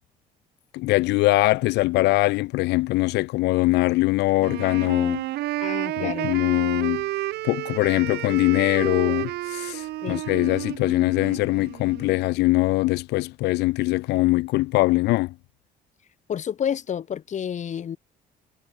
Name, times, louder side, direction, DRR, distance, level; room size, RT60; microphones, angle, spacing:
voice 1, 0.7-5.2 6.0-7.0 7.4-15.3, left 20 dB, 85° left, 0.9 m, -22 dB
Wind instrument woodwind instrument, 4.4-12.2, right 16 dB, 80° right, 3.2 m, -31 dB
voice 2, 5.6-6.3 10.0-10.2 16.3-18.0, left 8 dB, 45° left, 2.4 m, -29 dB
cardioid pair, 110°, 17 cm